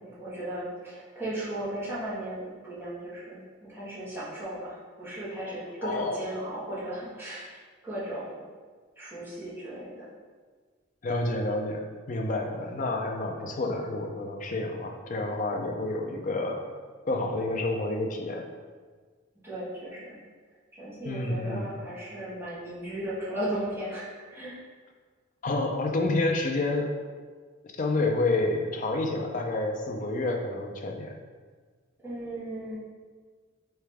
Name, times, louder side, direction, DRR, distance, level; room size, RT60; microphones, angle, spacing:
voice 1, 0.0-7.5 7.8-8.4 9.0-10.1 19.4-20.2 20.8-24.0 24.3-24.6 32.0-32.8, right 1 dB, 10° right, -12 dB, 1.4 m, -36 dB
voice 2, 5.8-6.2 11.0-16.6 17.1-18.5 21.0-21.7 25.4-26.9 27.6-31.2, left 2 dB, 40° left, 2 dB, 0.4 m, -29 dB
3.7 x 3.3 x 3.4 m, 1.5 s
head